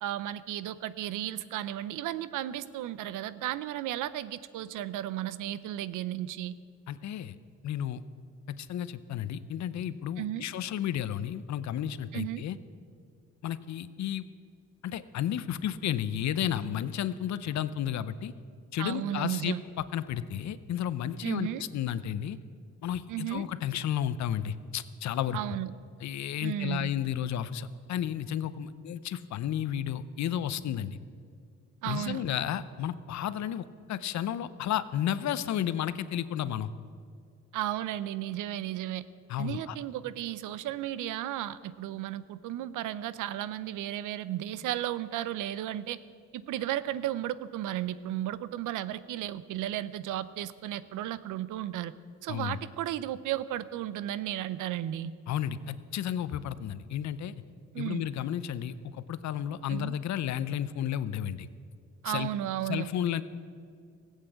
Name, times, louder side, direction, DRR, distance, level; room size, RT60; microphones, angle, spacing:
voice 1, 0.0-6.5 10.2-10.5 12.1-12.4 18.8-19.6 21.2-21.6 23.1-23.5 25.3-25.7 26.4-26.9 31.8-32.2 37.5-39.0 39.4-46.0 46.3-51.9 52.2-55.1 57.7-58.1 59.7-59.9 62.0-62.9, right 13 dB, 85° right, 16 dB, 0.6 m, -34 dB
voice 2, 6.9-7.3 7.6-8.0 8.5-12.6 13.4-14.2 14.8-18.3 18.7-22.4 22.8-25.4 26.0-31.0 31.9-36.7 39.3-39.7 52.3-52.6 55.3-57.4 57.8-61.5 62.0-62.3 62.7-63.2, left 10 dB, 65° left, 15 dB, 0.7 m, -32 dB
16.0 x 8.2 x 7.9 m, 2.2 s
cardioid pair, 90°, 30 cm